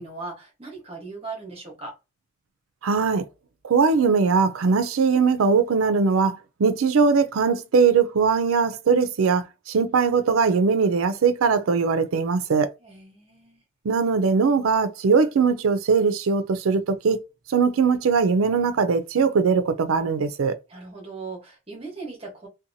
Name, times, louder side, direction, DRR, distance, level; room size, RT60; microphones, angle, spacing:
voice 1, 0.0-2.0 12.8-13.6 20.7-22.5, right 3 dB, 30° right, 1.0 m, -38 dB
voice 2, 2.8-3.3 3.6-12.7 13.8-17.2 17.5-20.5, right 5 dB, 90° right, 0.4 m, -21 dB
2.7 x 2.2 x 2.6 m
head